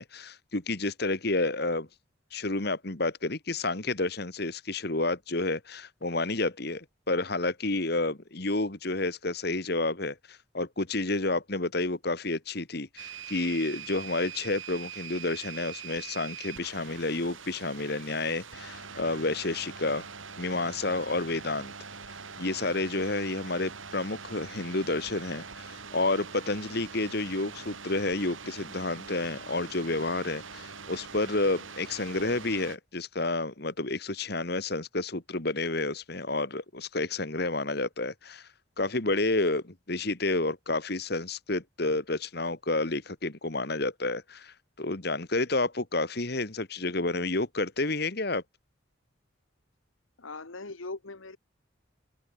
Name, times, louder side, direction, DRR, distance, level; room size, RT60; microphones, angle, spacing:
voice 1, 0.0-1.9 2.3-20.1 20.4-21.7 22.4-38.5 38.8-48.4, left 2 dB, 50° left, 1.7 m, -30 dB
sound 1, 13.0-32.8, right 6 dB, 75° right, 4.5 m, -43 dB
voice 2, 50.2-51.4, left 3 dB, 80° left, 1.6 m, -40 dB
open air
head